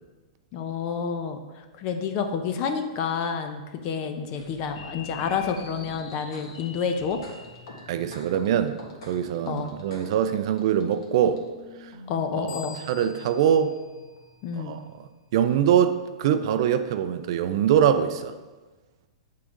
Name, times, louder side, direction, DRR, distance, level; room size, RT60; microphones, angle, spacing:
voice 1, 0.5-7.2 9.5-9.7 12.1-12.8 14.4-14.8, left 6 dB, 35° left, 6 dB, 0.6 m, -29 dB
sound 1, 4.3-15.1, left 2 dB, 65° left, 1.6 m, -45 dB
voice 2, 7.9-8.8 9.0-11.4 11.8-11.9 12.9-13.7 14.6-14.8 15.3-18.3, right 9 dB, 55° right, 10 dB, 0.4 m, -23 dB
sound 2, 12.5-15.0, left 5 dB, 85° left, 0.8 m, -46 dB
8.4 x 3.7 x 3.7 m, 1.2 s
hypercardioid pair, 145°, 3 cm